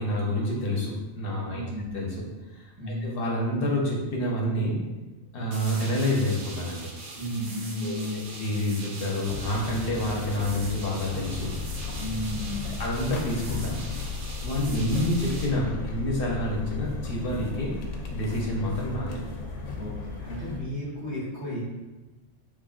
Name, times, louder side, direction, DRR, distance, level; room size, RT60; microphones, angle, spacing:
voice 1, 0.0-1.6 1.9-2.2 2.5-4.8 5.3-6.9 7.8-11.5 12.8-13.8 14.4-17.8 18.1-19.2, left 1 dB, 55° left, -2 dB, 0.9 m, -28 dB
voice 2, 1.5-1.9 2.8-3.1 7.2-8.3 12.0-12.8 19.7-21.6, left 1 dB, 65° right, -10 dB, 1.8 m, -33 dB
sound 1, 5.5-15.5, right 2 dB, 90° right, 1.0 m, -42 dB
sound 2, 9.2-20.6, left 4 dB, 90° left, 0.9 m, -35 dB
3.6 x 3.1 x 2.4 m, 1.2 s
omnidirectional pair, 1.2 m